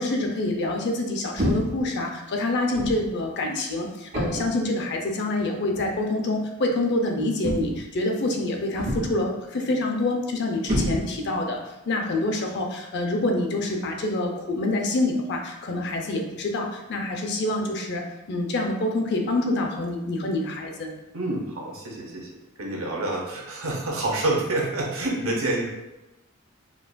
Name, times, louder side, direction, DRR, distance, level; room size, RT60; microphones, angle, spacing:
voice 1, 0.0-11.6 11.9-20.9, left 2 dB, 55° left, 2 dB, 0.5 m, -26 dB
sound 1, 1.4-1.9 2.7-3.1 4.1-4.6 5.7-5.9 7.4-7.9 8.8-9.3 10.7-11.4, equal, 65° right, 1.5 m, -27 dB
voice 2, 21.1-22.3 22.6-25.7, right 2 dB, 85° right, -1 dB, 0.8 m, -27 dB
4.5 x 2.4 x 2.2 m, 0.98 s
head